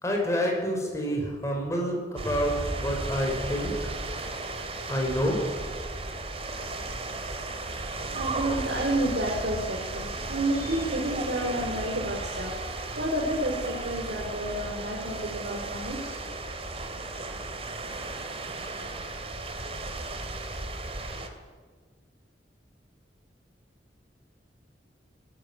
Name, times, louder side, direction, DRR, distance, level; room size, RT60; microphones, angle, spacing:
voice 1, 0.0-2.5 2.8-3.7 4.9-5.4, equal, 15° left, 0 dB, 5.7 m, -28 dB
sound 1, 2.2-21.3, right 2 dB, 35° right, 2.6 m, -35 dB
voice 2, 8.1-12.6 12.9-16.2, right 1 dB, 65° right, -1 dB, 4.1 m, -30 dB
19.5 x 17.5 x 9.9 m, 1.5 s
head